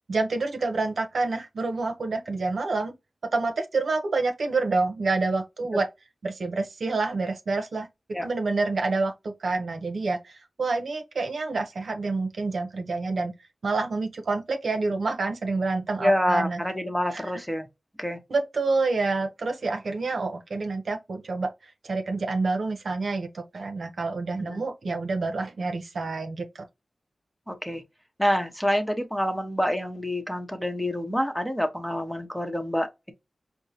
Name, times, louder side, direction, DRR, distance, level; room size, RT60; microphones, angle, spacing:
voice 1, 0.1-2.9 3.3-5.9 6.2-7.9 8.2-13.3 13.6-16.6 17.1-17.2 18.3-21.5 21.8-26.6, right 3 dB, 75° right, 0.7 m, -28 dB
voice 2, 16.0-17.7 18.0-18.2 24.4-24.6 27.5-27.8 28.2-33.1, equal, ahead, 1.0 m, -27 dB
4.5 x 2.1 x 2.7 m
cardioid pair, 50°, 0 cm